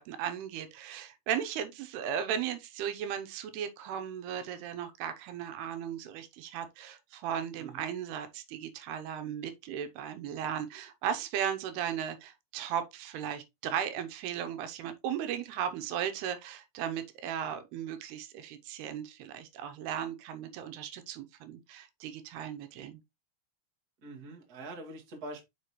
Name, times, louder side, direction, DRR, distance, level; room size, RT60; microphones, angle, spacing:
voice 1, 0.0-23.0, right 9 dB, 85° right, 2.9 m, -36 dB
voice 2, 24.0-25.4, right 2 dB, 35° right, 1.5 m, -44 dB
7.9 x 5.1 x 3.1 m
omnidirectional pair, 4.6 m